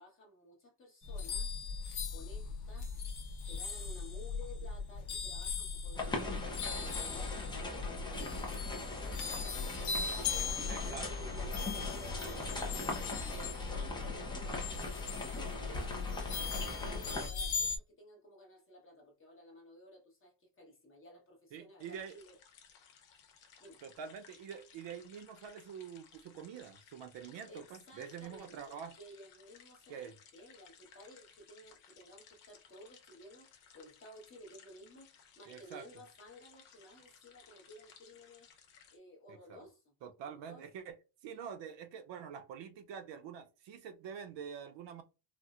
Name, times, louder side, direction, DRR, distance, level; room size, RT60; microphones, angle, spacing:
voice 1, 0.0-1.5 2.1-2.9 3.4-9.8 10.2-13.4 13.7-16.3 16.6-22.4 23.6-23.8 27.5-33.5 33.7-38.5 38.9-39.9 40.2-40.6, left 1 dB, 25° left, 0.9 m, -55 dB
sound 1, 1.0-17.8, left 5 dB, 50° left, 0.9 m, -39 dB
sound 2, 5.9-17.3, left 2 dB, 10° left, 0.4 m, -41 dB
voice 2, 10.7-11.1 21.5-22.2 23.8-28.9 29.9-30.1 35.5-35.9 39.3-39.6 40.0-40.9 41.2-45.0, right 7 dB, 60° right, 0.6 m, -46 dB
sound 3, 21.8-39.0, left 7 dB, 80° left, 1.0 m, -61 dB
4.2 x 2.1 x 2.3 m
cardioid pair, 160°, 49 cm